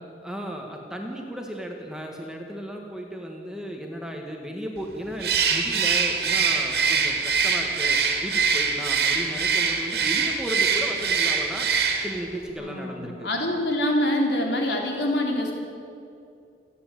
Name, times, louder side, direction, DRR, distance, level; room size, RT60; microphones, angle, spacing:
voice 1, 0.2-11.7 12.0-13.3, equal, 5° right, 1 dB, 1.7 m, -35 dB
Bird, 5.2-12.3, right 5 dB, 60° right, 2.6 m, -23 dB
voice 2, 12.6-15.5, left 1 dB, 70° left, 1 dB, 3.9 m, -25 dB
29.0 x 10.0 x 9.2 m, 2.5 s
head